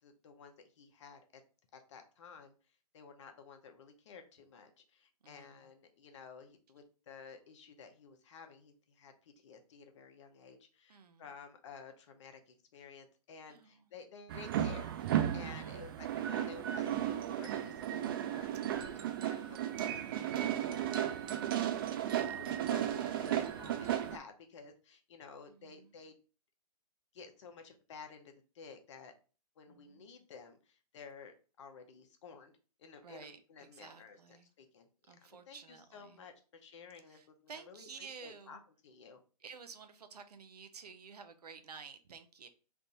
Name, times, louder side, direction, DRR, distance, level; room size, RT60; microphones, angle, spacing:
voice 1, 0.0-1.4 1.7-2.5 2.9-18.5 18.8-26.2 27.1-29.1 29.6-32.5 32.8-34.2 34.6-39.2, left 5 dB, 50° left, 0.8 m, -53 dB
voice 2, 5.2-5.6 10.9-11.2 13.5-13.8 15.4-15.9 18.7-19.3 22.1-22.6 25.6-25.9 29.7-30.0 33.0-34.5 35.1-36.2 37.1-38.6 39.4-42.5, right 5 dB, 75° right, 0.7 m, -52 dB
sound 1, 14.3-24.2, right 11 dB, 35° right, 0.4 m, -35 dB
3.5 x 2.6 x 4.0 m
hypercardioid pair, 140°, 20 cm